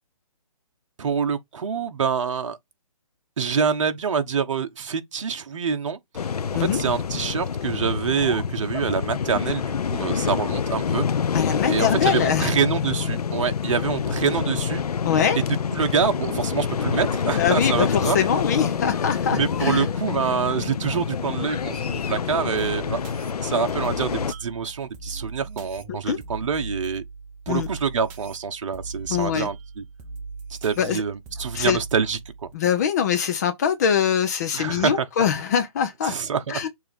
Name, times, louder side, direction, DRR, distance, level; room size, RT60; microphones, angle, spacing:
voice 1, 1.0-2.6 3.4-6.3 6.6-11.0 11.7-14.8 15.7-18.2 19.3-23.0 23.4-27.0 27.5-29.8 30.6-32.5 34.5-35.0 36.0-36.7, right 6 dB, 55° right, 1.2 m, -26 dB
sound 1, 6.1-24.3, left 7 dB, 80° left, 0.6 m, -26 dB
voice 2, 11.3-12.5 15.0-15.4 17.4-19.9 25.9-26.2 27.5-27.7 29.1-29.5 30.8-31.0 31.5-31.8 32.5-36.2 36.5-36.7, left 8 dB, 25° left, 0.8 m, -23 dB
sound 2, 22.5-32.5, right 4 dB, 15° right, 0.7 m, -39 dB
6.9 x 2.9 x 5.2 m
hypercardioid pair, 160°, 19 cm